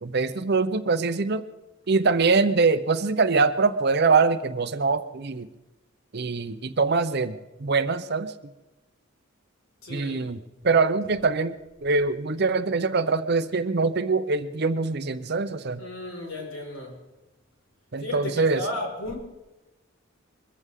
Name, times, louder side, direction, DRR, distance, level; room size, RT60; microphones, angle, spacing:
voice 1, 0.0-1.5 1.9-5.5 6.1-8.3 9.9-10.4 10.6-15.8 17.9-18.6, right 4 dB, 50° right, 12 dB, 0.7 m, -23 dB
voice 2, 9.8-10.3 15.8-17.0 18.0-19.2, left 2 dB, 75° left, 0 dB, 5.0 m, -34 dB
22.5 x 15.0 x 3.7 m, 1.0 s
head